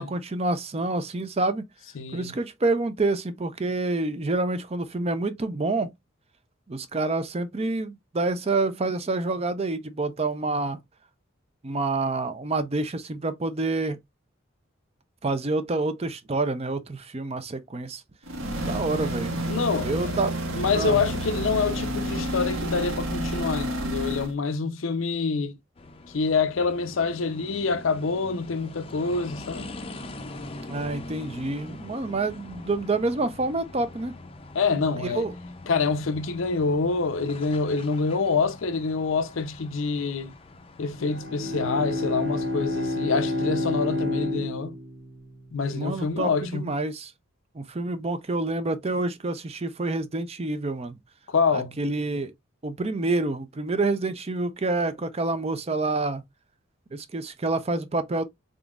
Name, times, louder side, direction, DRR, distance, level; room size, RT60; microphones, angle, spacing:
voice 1, 0.0-1.6 2.1-5.9 6.7-10.8 11.6-14.0 15.2-18.0 18.7-19.3 19.8-20.3 20.7-21.0 30.7-34.1 35.0-35.3 45.7-47.1 47.5-51.0 51.5-52.3 52.6-56.2 56.9-58.2, right 2 dB, 30° right, 0.5 m, -27 dB
voice 2, 2.0-2.3 19.5-20.2 20.5-25.6 26.1-29.7 34.5-35.2 35.7-40.3 40.8-44.7 45.5-46.7 51.3-51.7, left 4 dB, 75° left, 0.6 m, -26 dB
sound 1, 18.2-24.3, right 1 dB, 85° right, 1.5 m, -30 dB
sound 2, 25.8-42.9, left 2 dB, 30° left, 0.5 m, -43 dB
Bowed string instrument, 40.9-45.7, left 1 dB, 70° right, 1.2 m, -29 dB
3.9 x 3.7 x 2.3 m
head